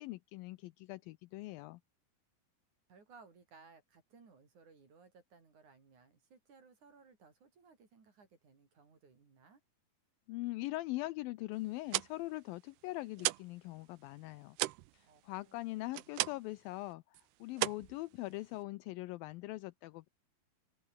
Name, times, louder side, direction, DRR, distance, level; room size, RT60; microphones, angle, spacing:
voice 1, 0.0-1.8 10.3-14.6 14.9-20.1, left 19 dB, 80° left, 2.2 m, -42 dB
voice 2, 2.9-9.6 15.1-16.4, right 4 dB, 50° right, 5.6 m, -62 dB
sound 1, 11.7-13.6 13.9-16.6 16.9-17.2 17.5-18.6, right 18 dB, 90° right, 2.9 m, -37 dB
open air
omnidirectional pair, 4.5 m